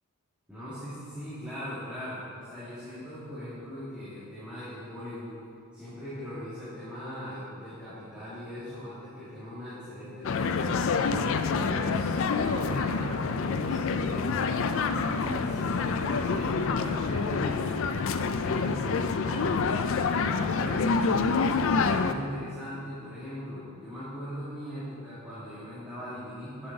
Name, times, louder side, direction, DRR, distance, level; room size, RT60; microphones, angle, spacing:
voice 1, 0.5-5.3 5.7-10.9 11.4-14.5 15.1-21.1 21.7-26.7, left 1 dB, 5° right, -14 dB, 2.1 m, -40 dB
sound 1, 10.2-22.1, left 4 dB, 60° left, 0.4 m, -27 dB
8.7 x 7.3 x 3.9 m, 2.3 s
head